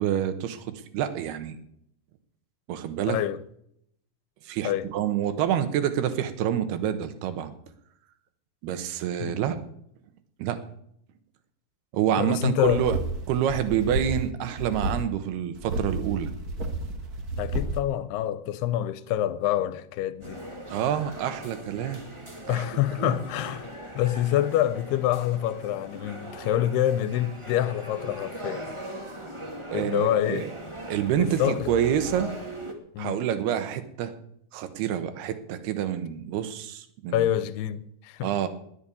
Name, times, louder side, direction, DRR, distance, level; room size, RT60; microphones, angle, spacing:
voice 1, 0.0-1.6 2.7-3.2 4.5-7.5 8.6-9.6 10.4-10.6 11.9-13.0 13.3-16.3 20.7-22.0 22.5-22.6 23.0-23.2 29.7-30.5 30.9-32.3 33.0-34.1 34.5-37.3 38.2-38.5, right 10 dB, 75° right, 3.2 m, -27 dB
voice 2, 3.1-3.4 4.6-4.9 9.2-9.4 12.2-12.9 17.4-20.4 22.5-23.7 24.0-28.7 29.7-30.5 31.2-31.7 32.9-33.2 37.1-38.3, left 12 dB, 80° left, 2.7 m, -26 dB
sound 1, 12.6-14.3 14.6-15.0 15.5-17.8, right 1 dB, 55° right, 1.0 m, -31 dB
sound 2, 20.2-32.7, right 1 dB, 40° right, 0.4 m, -40 dB
20.0 x 7.3 x 8.6 m
omnidirectional pair, 4.6 m